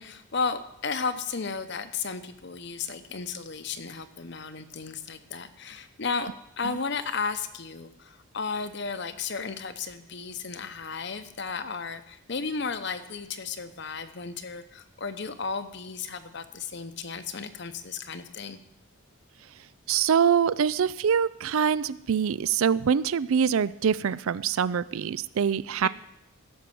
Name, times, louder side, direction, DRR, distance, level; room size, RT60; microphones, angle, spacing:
voice 1, 0.0-6.3 6.6-18.6 25.8-25.9, left 5 dB, 55° left, 11 dB, 0.8 m, -34 dB
voice 2, 19.9-25.9, right 7 dB, 80° right, 18 dB, 0.4 m, -24 dB
16.0 x 6.1 x 6.9 m, 0.82 s
head